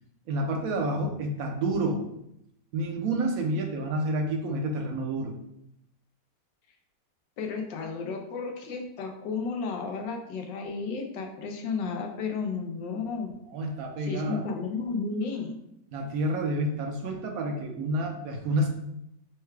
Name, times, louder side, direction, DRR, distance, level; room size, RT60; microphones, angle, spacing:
voice 1, 0.3-2.0 2.7-5.3 13.5-14.4 15.9-18.7, right 1 dB, 60° right, 2 dB, 1.1 m, -29 dB
voice 2, 7.4-13.3 14.0-15.6, left 4 dB, 80° left, 4 dB, 1.3 m, -33 dB
4.5 x 2.3 x 4.6 m, 0.79 s
omnidirectional pair, 1.9 m